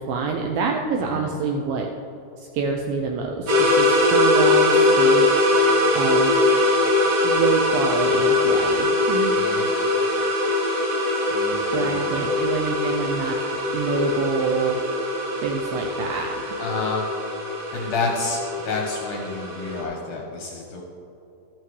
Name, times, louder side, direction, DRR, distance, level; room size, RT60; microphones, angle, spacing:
voice 1, 0.1-1.9 2.4-5.3 5.9-6.4 7.2-9.4 11.7-13.4 13.7-14.8 15.4-16.3, right 5 dB, 85° right, 2 dB, 2.1 m, -26 dB
voice 2, 1.0-1.3 9.3-9.7 11.3-12.2 16.6-17.1 17.7-20.8, left 3 dB, 75° left, 0 dB, 1.9 m, -29 dB
sound 1, 3.5-19.8, left 2 dB, 45° right, 3.8 m, -21 dB
13.0 x 11.5 x 3.2 m, 2.8 s
omnidirectional pair, 4.8 m